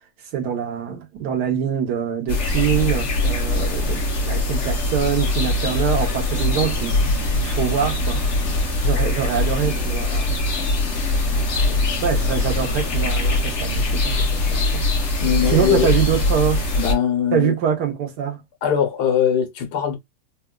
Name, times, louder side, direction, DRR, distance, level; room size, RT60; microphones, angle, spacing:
voice 1, 0.3-4.0 4.2-7.0 7.4-8.2 8.8-10.3 11.7-14.8 15.5-16.6 17.3-18.4, right 8 dB, 90° right, 1.5 m, -24 dB
sound 1, 2.3-16.9, left 2 dB, 55° left, 1.0 m, -22 dB
voice 2, 15.2-15.9 16.8-17.6 18.6-20.0, left 8 dB, 80° left, 1.5 m, -21 dB
4.0 x 2.3 x 2.2 m
omnidirectional pair, 1.7 m